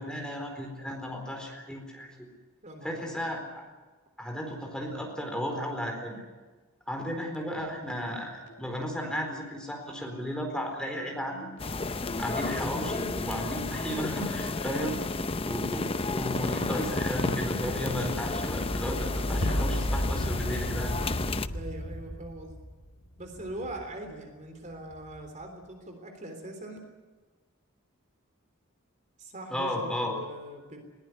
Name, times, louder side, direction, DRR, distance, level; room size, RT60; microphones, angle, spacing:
voice 1, 0.0-2.3 2.8-3.7 4.2-6.2 6.9-11.4 12.2-15.0 15.4-20.9 29.5-30.1, equal, 5° left, 2 dB, 4.2 m, -34 dB
voice 2, 2.6-3.2 21.5-22.6 23.2-26.8 29.2-30.8, right 1 dB, 35° right, 5 dB, 3.6 m, -41 dB
sound 1, 7.3-8.7 8.9-24.0 24.7-25.3, equal, 80° left, 2.7 m, -37 dB
sound 2, 11.6-21.5, left 3 dB, 25° left, 0.7 m, -32 dB
21.0 x 19.0 x 9.6 m, 1.3 s
head